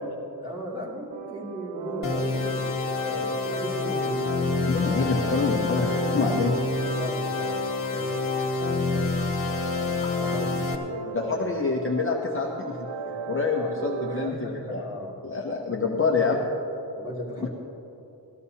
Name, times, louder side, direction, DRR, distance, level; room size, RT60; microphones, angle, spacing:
voice 1, 0.4-5.0 6.9-9.3 10.1-11.6 13.6-13.7 14.1-15.4 16.0-16.4 17.0-17.5, equal, 10° right, -5 dB, 2.6 m, -37 dB
sound 1, 1.1-14.3, right 7 dB, 80° right, 0.6 m, -36 dB
sound 2, 2.0-10.7, left 4 dB, 50° left, 1.5 m, -28 dB
voice 2, 4.7-6.6 11.1-12.8 13.1-14.8 15.3-16.4 17.4-17.5, left 4 dB, 30° left, 0 dB, 0.8 m, -26 dB
18.0 x 14.0 x 2.8 m, 2.9 s
wide cardioid pair, 155°, 43 cm